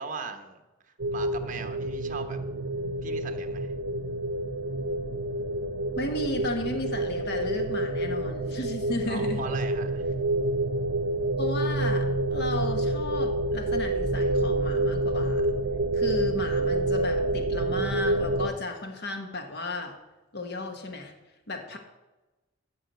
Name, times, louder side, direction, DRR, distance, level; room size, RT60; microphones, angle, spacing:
voice 1, 0.0-2.4 3.0-3.7 9.0-10.0 21.7-21.8, right 4 dB, 40° right, 6 dB, 1.1 m, -39 dB
sound 1, 1.0-18.5, right 1 dB, 70° right, 0.7 m, -28 dB
voice 2, 6.0-9.4 11.4-15.5 15.9-19.9 20.3-21.1 21.5-21.8, left 1 dB, 55° left, 4 dB, 1.3 m, -34 dB
14.0 x 4.9 x 8.0 m, 1.1 s
head